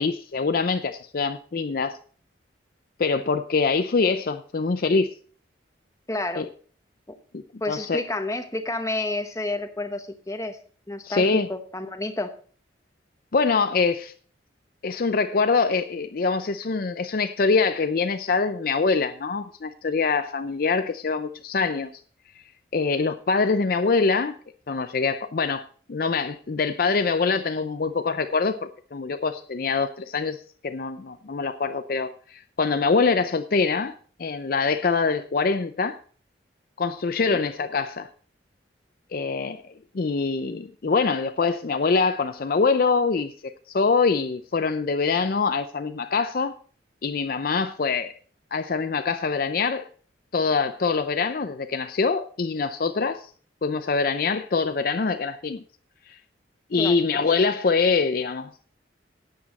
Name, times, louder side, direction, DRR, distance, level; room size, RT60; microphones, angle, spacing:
voice 1, 0.0-2.0 3.0-5.1 6.4-6.5 7.3-8.0 11.0-11.5 13.3-14.1 14.8-22.0 22.7-24.4 24.7-36.0 36.8-38.1 39.1-39.6 39.9-46.6 47.0-48.1 48.5-49.9 50.3-53.3 53.6-55.6 56.1-56.2 56.7-58.7, left 4 dB, 50° left, 0.5 m, -24 dB
voice 2, 6.1-6.5 7.1-7.2 7.6-10.6 10.9-12.3 37.2-37.4 56.8-57.0, left 2 dB, 15° left, 1.0 m, -30 dB
12.0 x 8.5 x 4.1 m
head